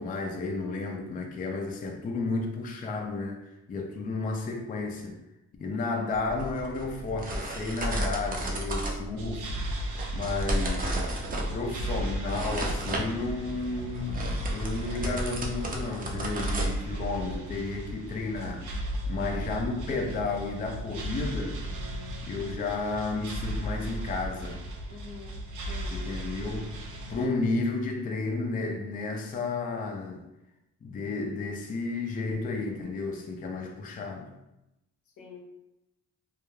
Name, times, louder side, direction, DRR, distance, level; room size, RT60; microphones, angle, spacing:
voice 1, 0.0-3.4 3.7-5.2 5.6-9.7 10.1-11.0 11.5-18.7 19.1-21.6 22.2-24.6 25.9-26.7 27.1-30.2 30.8-34.3, left 3 dB, 30° left, 2 dB, 0.4 m, -32 dB
sound 1, 6.1-17.3, right 1 dB, 30° right, 0.5 m, -33 dB
sound 2, 9.2-27.3, right 1 dB, 75° right, 0.6 m, -36 dB
voice 2, 24.9-25.3 25.7-26.1 35.2-35.6, left 5 dB, 75° left, 0 dB, 0.7 m, -46 dB
2.3 x 2.2 x 3.0 m, 0.90 s
cardioid pair, 90°, 30 cm